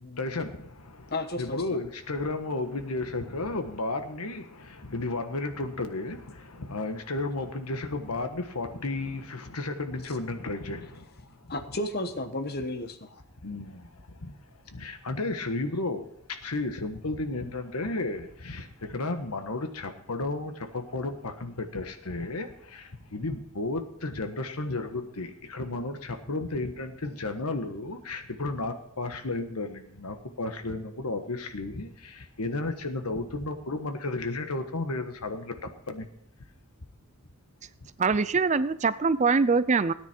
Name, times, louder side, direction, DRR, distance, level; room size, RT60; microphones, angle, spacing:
voice 1, 0.2-11.1 11.4-11.5 13.4-14.3 14.7-36.1, left 2 dB, 85° left, 7 dB, 1.4 m, -33 dB
voice 2, 1.1-1.8 11.5-13.1, left 1 dB, 45° left, 9 dB, 1.1 m, -33 dB
voice 3, 38.0-39.9, right 4 dB, 30° right, 15 dB, 0.4 m, -23 dB
17.5 x 9.6 x 4.5 m, 0.71 s
head